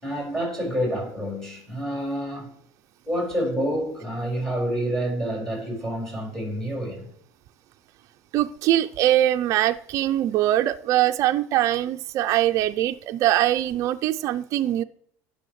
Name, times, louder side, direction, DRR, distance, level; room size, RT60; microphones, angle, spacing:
voice 1, 0.0-2.5 3.1-7.1, equal, 5° left, 4.9 m, -28 dB
voice 2, 8.3-14.8, right 13 dB, 45° right, 0.4 m, -22 dB
18.5 x 6.3 x 3.1 m
supercardioid pair, 130°, 8 cm